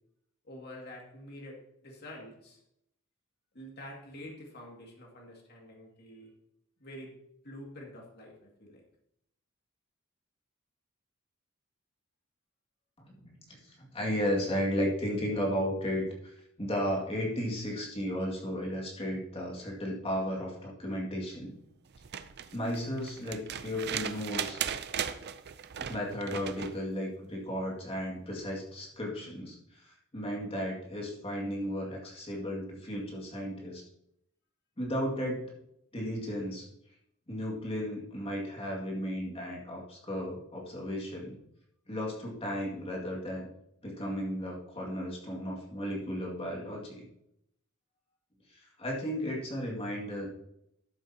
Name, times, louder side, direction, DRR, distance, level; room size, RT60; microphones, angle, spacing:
voice 1, 0.4-2.6 3.5-6.3 6.8-7.2 7.4-8.8, left 1 dB, 50° left, -1 dB, 2.3 m, -47 dB
voice 2, 13.0-21.5 22.5-24.6 25.8-33.8 34.8-35.5 35.9-36.7 37.3-41.4 41.9-43.5 43.8-47.0 48.5-50.3, equal, 25° left, -2 dB, 2.1 m, -34 dB
sound 1, 21.9-26.8 28.4-28.5, right 8 dB, 50° right, 0.5 m, -37 dB
12.5 x 7.6 x 2.9 m, 0.76 s
head